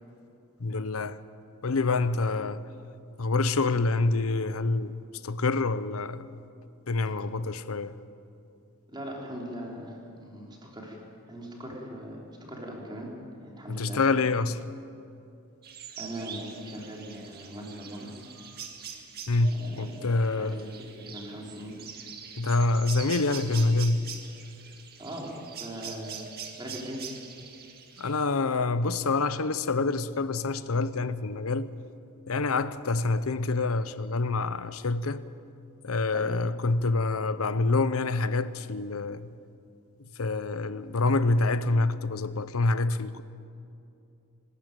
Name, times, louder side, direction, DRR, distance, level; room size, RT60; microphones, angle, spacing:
voice 1, 0.6-1.2 1.6-2.7 3.2-5.0 5.2-6.4 6.9-8.0 13.7-14.6 19.3-20.6 22.4-24.0 28.0-31.7 32.3-35.2 35.8-39.3 40.2-43.2, left 3 dB, 75° left, 0.8 m, -26 dB
voice 2, 8.9-11.0 11.3-12.2 12.5-13.1 13.4-14.0 14.4-14.5 16.0-18.1 19.7-20.1 20.4-21.8 25.0-25.3 25.6-26.2 26.6-27.0 36.1-36.3, equal, 20° right, 3.7 m, -40 dB
sound 1, 15.6-28.2, right 7 dB, 45° right, 1.9 m, -43 dB
25.5 x 13.0 x 9.1 m
head